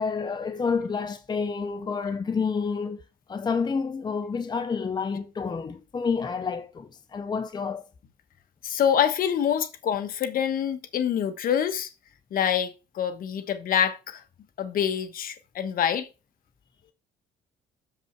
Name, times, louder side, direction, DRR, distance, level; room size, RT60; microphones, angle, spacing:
voice 1, 0.0-3.0 3.3-7.8, left 5 dB, 25° left, 0.7 m, -29 dB
voice 2, 8.6-11.9 12.3-14.2 14.6-16.1, left 9 dB, 60° left, 1.2 m, -26 dB
7.0 x 5.5 x 4.5 m
cardioid pair, 110°, 17 cm